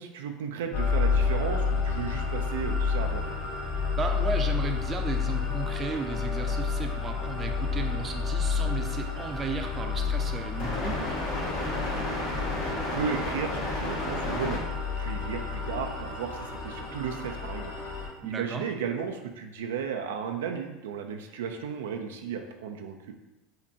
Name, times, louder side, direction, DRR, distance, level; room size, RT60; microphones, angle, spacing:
voice 1, 0.0-3.2 12.6-14.6 15.0-17.7 18.2-23.0, right 7 dB, 85° right, 4 dB, 0.3 m, -34 dB
sound 1, 0.7-18.1, left 4 dB, 65° left, 1.5 m, -29 dB
voice 2, 4.0-11.2 18.2-18.6, right 4 dB, 30° right, 4 dB, 0.5 m, -35 dB
5.5 x 2.2 x 2.7 m, 1.0 s
hypercardioid pair, 95°, 0 cm